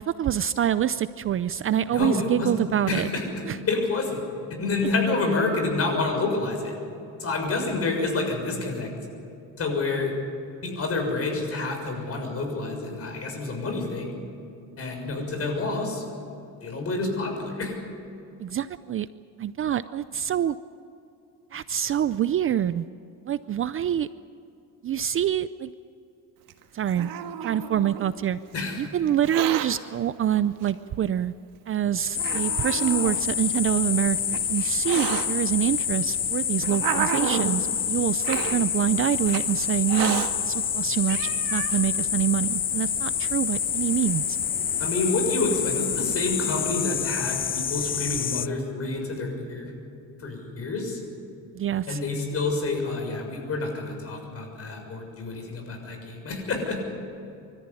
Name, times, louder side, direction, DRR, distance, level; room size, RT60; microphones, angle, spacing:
voice 1, 0.0-3.1 3.5-3.6 18.4-19.1 19.4-20.6 21.5-22.9 23.3-24.1 24.8-25.7 26.7-27.1 27.4-28.4 28.8-31.3 31.7-44.4 51.5-52.0, right 10 dB, 35° right, 14 dB, 0.5 m, -26 dB
voice 2, 1.9-2.5 2.9-4.2 4.5-6.7 7.2-8.9 9.6-10.1 10.6-14.2 14.8-16.0 16.6-17.8 28.5-28.8 44.8-49.7 50.2-51.0 51.9-56.8, left 3 dB, 40° left, 3 dB, 6.7 m, -28 dB
Hiss, 26.5-28.1 29.1-29.7 30.6-30.7 31.5-31.6 32.2-33.2 34.1-35.3 36.1-37.6 38.2-38.6 39.2-39.4 39.9-40.3 40.8-40.9 41.1-41.8, right 10 dB, 70° right, 1.8 m, -31 dB
sound 1, 32.1-48.5, left 8 dB, 25° left, 0.5 m, -27 dB
25.0 x 14.0 x 9.9 m, 2.7 s
cardioid pair, 115°, 36 cm